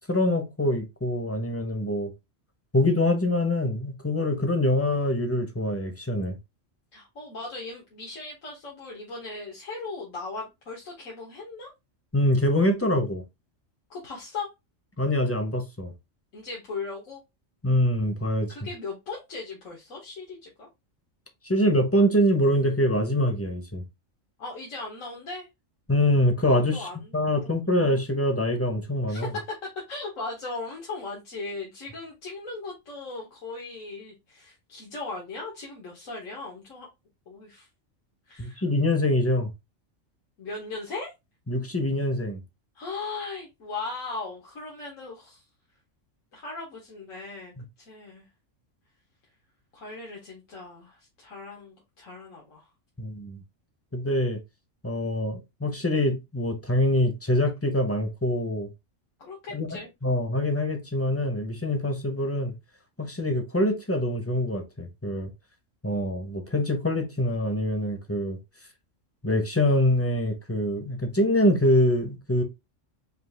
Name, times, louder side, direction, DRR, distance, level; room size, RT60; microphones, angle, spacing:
voice 1, 0.1-2.1 2.7-6.4 12.1-13.2 15.0-15.9 17.6-18.6 21.4-23.8 25.9-29.3 38.4-39.5 41.5-42.4 53.0-53.4 53.9-54.4 54.8-58.7 59.5-62.5 63.0-65.3 65.8-68.4 69.2-72.4, left 1 dB, 15° left, 0.6 m, -24 dB
voice 2, 6.9-11.7 13.9-14.5 16.3-17.2 18.5-20.7 24.4-25.5 26.7-27.7 29.1-29.5 29.9-36.9 37.3-37.7 38.2-38.6 40.4-41.1 42.7-45.4 46.3-48.3 49.7-52.7 59.2-59.9, left 3 dB, 85° left, 1.6 m, -38 dB
5.3 x 2.4 x 3.3 m
omnidirectional pair, 1.3 m